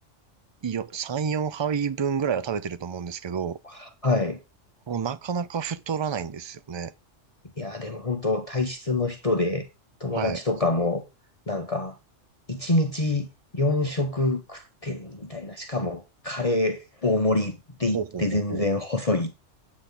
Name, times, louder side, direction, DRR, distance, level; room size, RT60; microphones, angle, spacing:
voice 1, 0.6-3.6 4.9-6.9 10.1-10.4 17.9-18.6, right 7 dB, 40° right, 0.4 m, -29 dB
voice 2, 3.7-4.4 7.6-9.7 10.0-11.0 11.5-12.0 12.5-13.3 13.5-19.3, left 2 dB, 30° left, 1.1 m, -26 dB
8.4 x 8.1 x 3.9 m
omnidirectional pair, 1.3 m